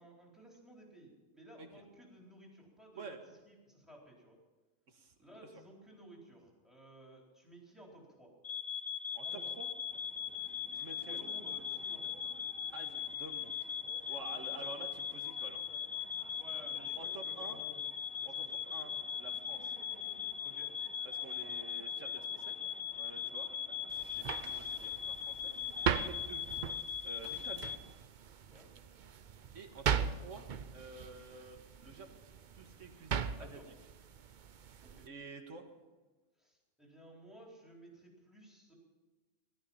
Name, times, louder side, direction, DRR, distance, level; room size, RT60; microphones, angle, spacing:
voice 1, 0.0-3.2 3.4-4.4 5.2-8.3 9.2-9.5 11.1-12.2 16.3-18.5 20.4-20.7 23.2-23.3 28.5-28.7 33.3-33.7 34.8-35.1 36.4-38.7, right 1 dB, ahead, -2 dB, 4.0 m, -56 dB
voice 2, 4.9-5.4 9.1-9.7 10.7-11.2 12.7-13.8 14.1-15.7 17.0-17.6 18.2-19.7 21.0-22.6 22.9-23.5 23.8-26.4 27.0-27.7 29.5-32.2 32.5-33.6 35.1-35.7, right 3 dB, 80° right, 5 dB, 2.0 m, -50 dB
sound 1, 8.4-27.8, left 8 dB, 55° left, 1.0 m, -40 dB
sound 2, 9.9-26.8 27.2-28.0, left 1 dB, 35° left, 2.0 m, -58 dB
sound 3, 23.9-35.1, right 7 dB, 50° right, 0.6 m, -40 dB
18.0 x 13.0 x 5.7 m, 1.2 s
omnidirectional pair, 1.3 m